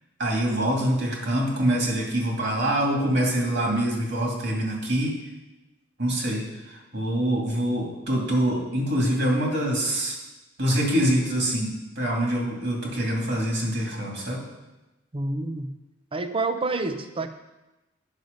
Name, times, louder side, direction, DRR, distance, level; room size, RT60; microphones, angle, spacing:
voice 1, 0.2-5.2 6.0-10.2 10.6-14.4, right 1 dB, 65° right, -1 dB, 2.5 m, -25 dB
voice 2, 15.1-15.7 16.1-17.3, right 3 dB, 30° right, 9 dB, 0.6 m, -28 dB
9.2 x 6.5 x 5.3 m, 1.0 s
head